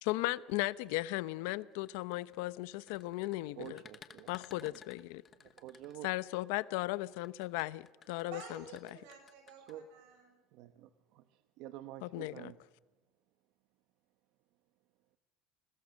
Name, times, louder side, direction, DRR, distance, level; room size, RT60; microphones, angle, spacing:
voice 1, 0.0-3.8 4.3-5.2 6.0-8.6 12.0-12.5, left 19 dB, 75° left, 0.8 m, -36 dB
sound 1, 1.7-6.4 7.1-9.7, left 7 dB, 20° left, 1.1 m, -57 dB
voice 2, 3.6-4.3 4.6-4.8 5.3-6.1 9.7-9.9 10.5-12.6, right 13 dB, 55° right, 1.0 m, -49 dB
voice 3, 8.2-10.3, right 6 dB, 85° right, 7.7 m, -51 dB
29.5 x 21.0 x 6.4 m
cardioid pair, 180°, 0 cm